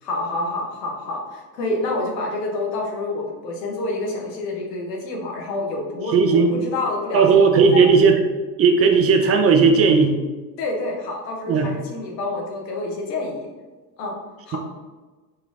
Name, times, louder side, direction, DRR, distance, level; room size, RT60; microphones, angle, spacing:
voice 1, 0.0-7.9 10.6-13.5 14.0-14.2 14.5-14.6, left 2 dB, 85° left, 0 dB, 1.0 m, -28 dB
voice 2, 6.1-6.7 7.1-8.2 8.6-10.2 11.5-11.7, right 5 dB, 30° right, 5 dB, 0.4 m, -15 dB
3.2 x 3.0 x 3.6 m, 1.3 s
hypercardioid pair, 70°, 48 cm